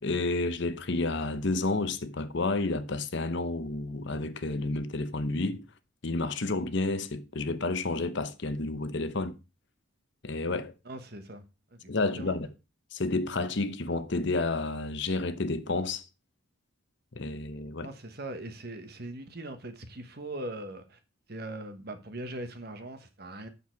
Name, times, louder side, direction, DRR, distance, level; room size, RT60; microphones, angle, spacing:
voice 1, 0.0-5.6 6.0-9.4 10.2-10.7 11.9-12.5 12.9-16.1 17.2-17.9, left 2 dB, 55° left, 0.8 m, -30 dB
voice 2, 10.8-11.4 11.7-12.4 17.8-21.0 21.3-23.5, right 1 dB, 45° right, 1.4 m, -40 dB
8.5 x 6.9 x 4.7 m
head